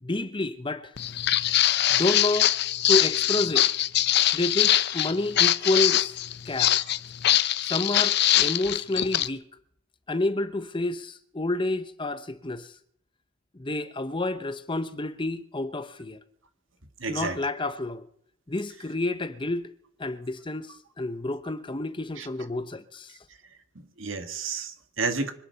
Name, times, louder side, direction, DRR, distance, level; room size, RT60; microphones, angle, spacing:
voice 1, 0.0-0.9 1.9-2.5 2.9-3.7 4.3-6.1 6.5-6.7 7.6-9.4 10.1-12.7 13.5-16.2 17.1-18.0 18.5-19.7 20.0-23.2, left 2 dB, 25° left, 0.9 m, -29 dB
Walk footsteps, 1.0-9.3, left 12 dB, 50° left, 0.5 m, -23 dB
voice 2, 17.0-17.4 22.2-22.3 24.0-25.3, right 4 dB, 65° right, 1.9 m, -30 dB
25.0 x 10.0 x 5.7 m
head